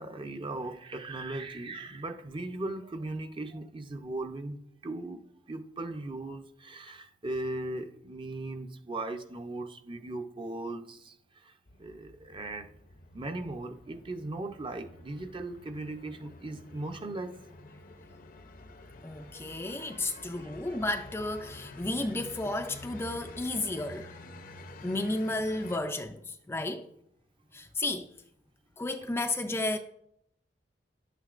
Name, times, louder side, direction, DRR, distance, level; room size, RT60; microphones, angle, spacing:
voice 1, 0.0-5.2 5.5-12.7 13.1-17.4 19.7-20.6, right 2 dB, 30° right, 0.6 m, -38 dB
sound 1, 11.7-25.8, left 2 dB, 50° left, 0.7 m, -49 dB
voice 2, 19.0-24.1 24.8-26.9 27.5-28.1 28.8-29.8, left 2 dB, 15° left, 0.4 m, -32 dB
10.5 x 9.0 x 2.5 m
head